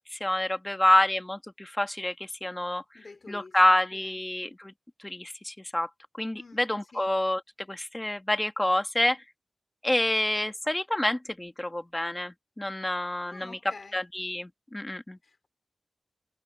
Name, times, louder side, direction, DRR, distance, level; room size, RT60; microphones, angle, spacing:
voice 1, 0.1-2.8 3.3-4.7 5.0-5.9 6.2-7.4 7.7-9.2 9.8-13.6 13.9-15.2, left 1 dB, 15° left, 1.9 m, -27 dB
voice 2, 2.9-3.6 3.9-4.2 6.3-7.1 13.2-14.0 15.2-15.5, left 3 dB, 55° left, 4.4 m, -49 dB
wide cardioid pair, 95°, 0 cm